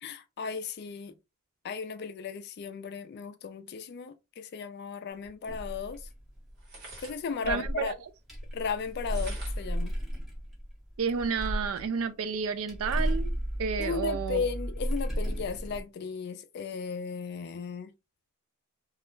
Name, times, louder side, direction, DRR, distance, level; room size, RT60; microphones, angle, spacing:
voice 1, 0.0-1.2 1.6-6.1 7.0-7.9 8.5-9.9 13.8-17.9, left 5 dB, 45° left, 0.3 m, -35 dB
sound 1, 5.2-5.3 6.6-7.9 8.9-9.8 10.4-10.5 10.8-11.9, equal, 45° right, 1.0 m, -39 dB
sound 2, 5.5-7.0 7.4-7.5 8.1-12.0 12.3-15.8, equal, ahead, 0.6 m, -34 dB
voice 2, 7.4-7.9 11.0-13.3 13.6-14.4, right 6 dB, 70° right, 0.4 m, -30 dB
2.3 x 2.1 x 3.0 m
head